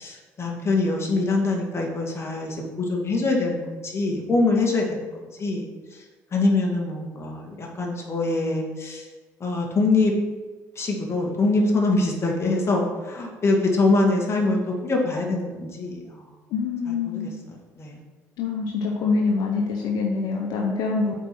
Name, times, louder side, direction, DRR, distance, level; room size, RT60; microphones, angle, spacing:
voice 1, 0.0-5.0 5.4-5.7 6.3-9.1 9.4-10.1 10.8-16.2 16.9-18.0, left 2 dB, 40° left, 0 dB, 2.3 m, -24 dB
voice 2, 16.5-17.4 18.4-21.1, left 4 dB, 75° left, 0 dB, 1.0 m, -25 dB
8.0 x 4.7 x 6.3 m, 1.3 s
supercardioid pair, 70°, 7 cm